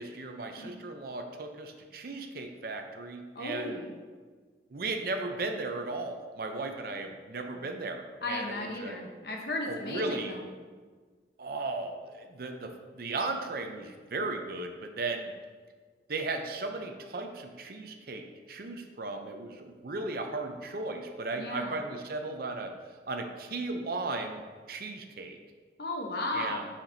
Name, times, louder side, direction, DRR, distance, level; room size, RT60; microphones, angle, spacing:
voice 1, 0.0-3.7 4.7-8.6 8.8-9.0 9.7-10.3 11.4-15.3 16.1-22.7 23.1-24.4 24.7-25.4 26.3-26.6, right 3 dB, 55° right, 5 dB, 0.6 m, -36 dB
voice 2, 3.3-3.9 8.2-10.5 21.4-21.8 25.8-26.7, left 2 dB, 60° left, 1 dB, 0.9 m, -35 dB
7.2 x 5.8 x 2.7 m, 1.5 s
head